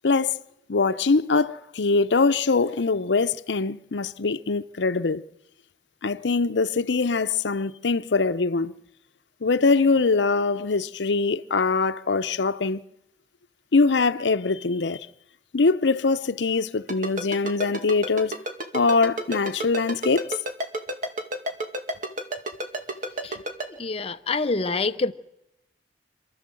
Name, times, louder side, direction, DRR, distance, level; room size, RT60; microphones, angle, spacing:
voice 1, 0.0-0.4 0.7-5.2 6.0-8.7 9.4-12.8 13.7-15.1 15.5-18.4 18.7-20.3, left 4 dB, 90° left, 0.7 m, -23 dB
Ringtone, 16.9-23.6, right 1 dB, 50° right, 2.2 m, -29 dB
voice 2, 23.8-25.1, left 3 dB, 35° left, 0.8 m, -26 dB
27.0 x 13.0 x 7.7 m
head